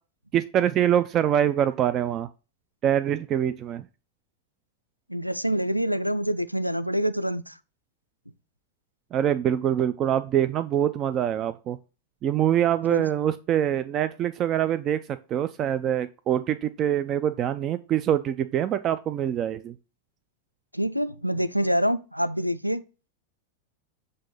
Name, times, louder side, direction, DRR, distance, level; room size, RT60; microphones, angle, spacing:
voice 1, 0.3-2.3 2.8-3.8 9.1-11.8 12.2-15.0 15.3-19.7, right 10 dB, 30° right, 0.3 m, -24 dB
voice 2, 5.1-7.6 12.9-13.1 20.7-22.8, equal, 90° left, 0.4 m, -26 dB
7.5 x 2.7 x 5.2 m
figure-of-eight pair, 90°, 0 cm